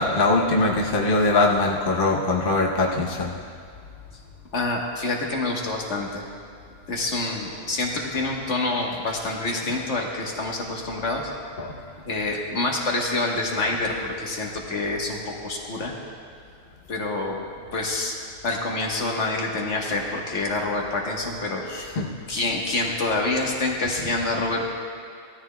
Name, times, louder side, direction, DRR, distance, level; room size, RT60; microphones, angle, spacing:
voice 1, 0.0-3.3 11.6-11.7 21.7-22.1, left 2 dB, 50° left, -1 dB, 1.0 m, -22 dB
voice 2, 4.5-6.2 6.9-11.3 12.1-15.9 16.9-17.4 17.7-18.1 18.4-21.9 22.3-24.7, left 2 dB, 80° left, -1 dB, 1.6 m, -27 dB
17.0 x 13.0 x 2.2 m, 2.2 s
omnidirectional pair, 1.2 m